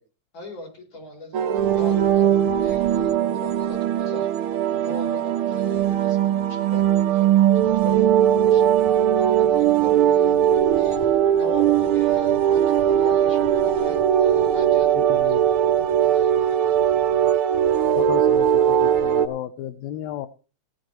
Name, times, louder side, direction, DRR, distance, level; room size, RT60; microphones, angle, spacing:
voice 1, 0.3-4.3 4.7-16.8, left 1 dB, 35° left, 1 dB, 4.4 m, -40 dB
sound 1, 1.3-19.3, right 10 dB, 70° right, 1.3 m, -19 dB
voice 2, 15.0-15.4 18.0-20.3, left 12 dB, 75° left, 10 dB, 1.8 m, -32 dB
17.5 x 10.5 x 3.1 m, 0.34 s
omnidirectional pair, 3.6 m